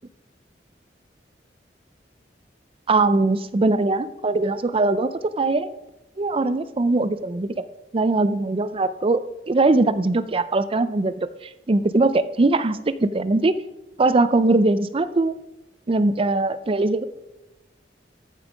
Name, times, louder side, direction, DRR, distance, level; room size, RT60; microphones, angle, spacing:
voice 1, 2.9-5.7 6.2-7.5 7.9-9.2 9.5-11.3 11.7-13.5 14.0-15.3 15.9-17.0, right 2 dB, 30° right, 13 dB, 0.5 m, -21 dB
14.0 x 5.4 x 5.1 m, 0.97 s
head